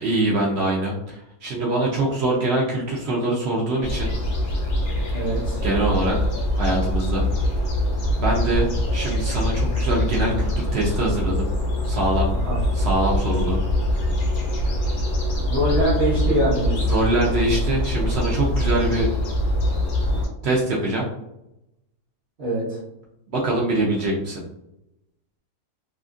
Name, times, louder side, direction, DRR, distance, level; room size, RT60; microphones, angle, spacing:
voice 1, 0.0-4.1 5.6-6.2 6.5-7.2 8.2-11.5 11.8-12.3 12.7-13.6 16.9-19.1 20.4-21.1 23.3-24.4, right 2 dB, 80° right, -3 dB, 0.6 m, -23 dB
sound 1, 3.8-20.3, left 1 dB, 60° left, 0.6 m, -23 dB
voice 2, 5.1-5.6 12.3-12.6 15.4-16.9 22.4-22.8, right 1 dB, 50° right, -8 dB, 0.9 m, -24 dB
2.7 x 2.4 x 2.4 m, 0.86 s
omnidirectional pair, 1.7 m